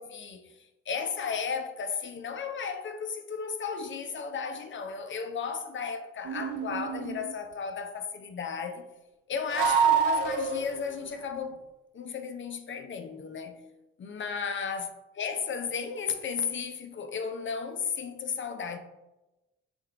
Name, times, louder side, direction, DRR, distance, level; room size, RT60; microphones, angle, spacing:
voice 1, 0.0-8.9 9.3-11.6 11.9-13.6 14.0-18.8, left 6 dB, 35° left, 0.6 m, -34 dB
sound 1, 6.3-7.3 9.5-10.9, right 6 dB, 75° right, 0.6 m, -26 dB
3.5 x 3.1 x 3.6 m
hypercardioid pair, 45°, 33 cm